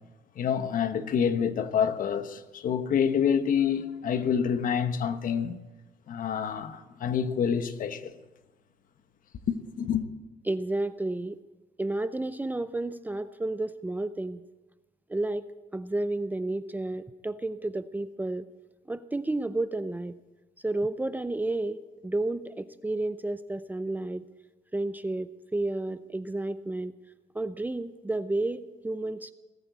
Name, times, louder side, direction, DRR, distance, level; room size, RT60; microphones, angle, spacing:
voice 1, 0.4-5.6 6.1-8.2 9.5-10.0, left 7 dB, 55° left, 1.2 m, -27 dB
voice 2, 10.5-11.4 11.8-14.4 15.1-15.5 15.7-18.4 18.9-20.1 20.6-24.2 24.7-26.9 27.3-29.3, right 2 dB, 10° right, 0.5 m, -31 dB
19.0 x 8.9 x 8.3 m
cardioid pair, 110°, 17 cm